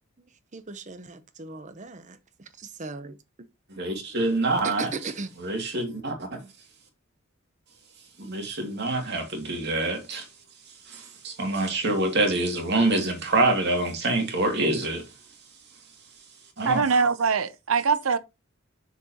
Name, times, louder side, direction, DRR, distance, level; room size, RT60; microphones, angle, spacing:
voice 1, 0.5-2.2 2.6-3.2 4.6-5.3, right 3 dB, 35° right, 0.9 m, -37 dB
voice 2, 3.7-4.9 5.4-6.4 8.2-10.2 10.9-15.0 16.6-16.8, right 2 dB, 55° right, 2.4 m, -26 dB
voice 3, 16.6-18.2, right 5 dB, 80° right, 0.7 m, -23 dB
7.0 x 6.8 x 2.9 m
head